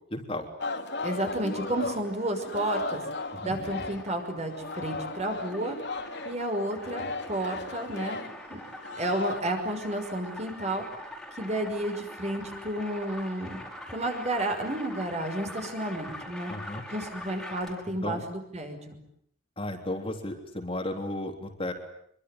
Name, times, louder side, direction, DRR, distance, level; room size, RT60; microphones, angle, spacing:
voice 1, 0.1-0.5 3.3-3.6 16.5-16.8 18.0-18.2 19.6-21.7, left 1 dB, 30° left, 4 dB, 3.5 m, -34 dB
Singing, 0.6-4.2 4.5-9.4, left 3 dB, 60° left, 2.9 m, -36 dB
voice 2, 1.0-3.0 3.4-5.8 6.2-8.2 8.5-8.6 9.0-10.8 11.4-13.6 13.9-16.5 16.9-19.0, right 1 dB, 35° right, 5 dB, 5.8 m, -31 dB
sound 1, 1.5-18.0, left 1 dB, ahead, 4.9 m, -44 dB
26.0 x 24.0 x 9.7 m, 0.68 s
head